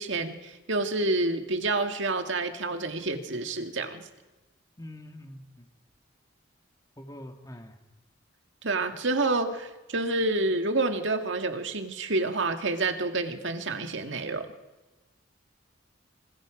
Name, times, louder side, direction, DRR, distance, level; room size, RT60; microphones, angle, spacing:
voice 1, 0.0-4.0 8.6-14.5, right 2 dB, 70° right, 6 dB, 1.9 m, -28 dB
voice 2, 4.8-5.6 7.0-7.7, left 1 dB, 20° left, 4 dB, 2.0 m, -44 dB
26.0 x 26.0 x 5.2 m, 1.1 s
head